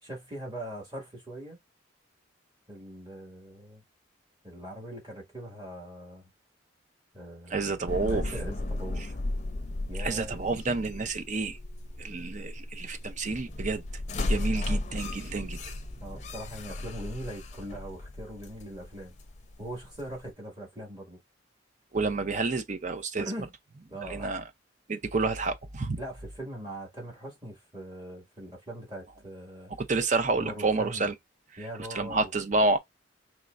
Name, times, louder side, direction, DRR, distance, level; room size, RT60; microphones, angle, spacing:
voice 1, 0.0-1.6 2.7-3.8 4.4-6.3 7.1-7.8 8.1-9.2 9.9-10.4 14.5-14.8 16.0-19.1 19.6-21.2 23.2-23.5 23.9-24.3 26.0-29.7 30.4-31.1 31.6-32.3, right 1 dB, 20° right, 2.0 m, -41 dB
voice 2, 7.5-8.3 10.0-11.6 12.0-13.8 14.3-15.6 21.9-23.3 24.1-24.4 24.9-26.0 29.7-31.1 31.9-32.8, right 3 dB, 40° right, 0.6 m, -29 dB
sound 1, 7.9-20.3, left 2 dB, 35° left, 0.6 m, -35 dB
4.4 x 3.2 x 2.5 m
head